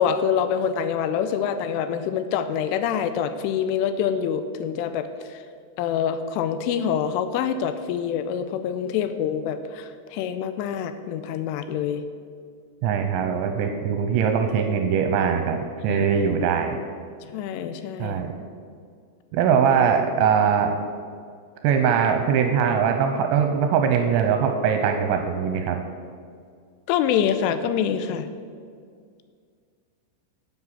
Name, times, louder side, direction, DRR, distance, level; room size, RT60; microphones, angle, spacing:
voice 1, 0.0-5.4 5.8-12.0 15.9-16.1 17.3-18.2 26.9-28.3, left 8 dB, 85° left, 10 dB, 3.0 m, -26 dB
voice 2, 12.8-16.8 18.0-18.3 19.3-20.8 21.6-25.8, right 7 dB, 80° right, 5 dB, 2.8 m, -21 dB
10.0 x 7.5 x 7.5 m, 2.1 s
omnidirectional pair, 5.8 m